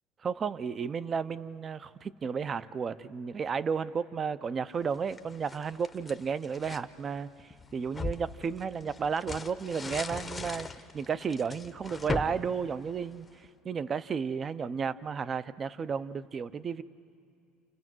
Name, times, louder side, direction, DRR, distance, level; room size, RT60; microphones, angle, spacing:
voice 1, 0.2-7.3 7.7-10.7 10.9-13.3 13.6-16.8, right 6 dB, 30° right, 16 dB, 0.6 m, -33 dB
sound 1, 4.9-6.9 7.4-13.5, left 3 dB, 15° left, 0.8 m, -39 dB
29.5 x 29.0 x 6.2 m, 2.4 s
cardioid pair, 135°, 0 cm